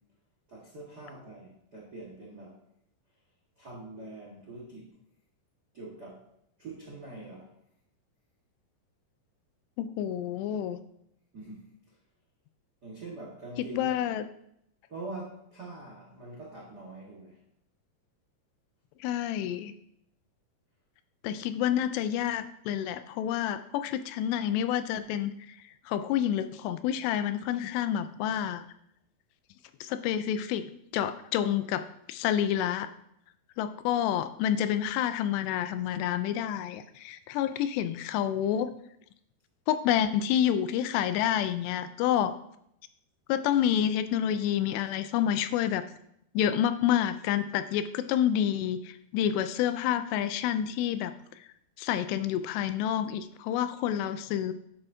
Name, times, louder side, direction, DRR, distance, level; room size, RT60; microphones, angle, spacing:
voice 1, 0.5-2.6 3.6-4.9 5.7-6.2 6.6-7.5 11.3-12.0 12.8-14.0 14.9-17.4, right 2 dB, 65° right, -3 dB, 0.9 m, -44 dB
voice 2, 9.8-10.8 13.7-14.3 19.0-19.7 21.2-25.3 25.9-28.6 29.8-30.7 30.9-32.9 33.6-38.7 39.7-42.3 43.3-45.8 46.3-51.1 51.8-54.5, left 10 dB, 85° left, 10 dB, 2.7 m, -28 dB
10.0 x 8.9 x 2.7 m, 0.74 s
omnidirectional pair, 4.8 m